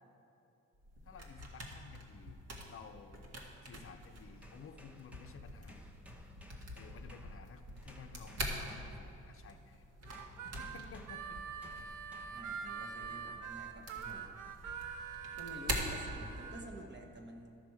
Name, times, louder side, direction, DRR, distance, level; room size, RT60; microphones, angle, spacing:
sound 1, 0.7-16.7, right 1 dB, 55° right, 1.6 m, -45 dB
voice 1, 1.1-2.4 2.7-3.2 3.6-5.8 6.7-9.9 10.4-11.7, left 6 dB, 45° left, 6 dB, 0.6 m, -54 dB
sound 2, 4.3-9.6 10.1-12.6 13.3-13.6, equal, 5° right, 0.9 m, -59 dB
Harmonica, 10.1-16.6, right 7 dB, 80° right, 0.7 m, -44 dB
voice 2, 12.3-14.4 15.4-17.6, equal, 35° right, 2 dB, 1.3 m, -50 dB
13.0 x 6.0 x 4.8 m, 2.7 s
cardioid pair, 90°, 30 cm